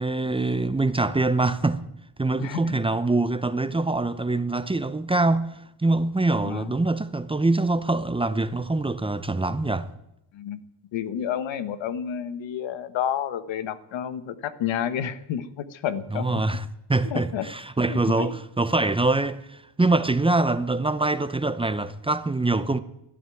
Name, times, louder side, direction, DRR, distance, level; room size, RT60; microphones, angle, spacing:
voice 1, 0.0-1.8 2.2-9.9 16.1-22.8, right 2 dB, 10° right, 0.7 m, -24 dB
voice 2, 2.4-2.8 6.4-6.7 10.3-10.6 10.9-16.4 17.0-17.4 17.9-18.3, left 9 dB, 85° left, 1.2 m, -30 dB
12.5 x 12.5 x 9.1 m
cardioid pair, 115°, 44 cm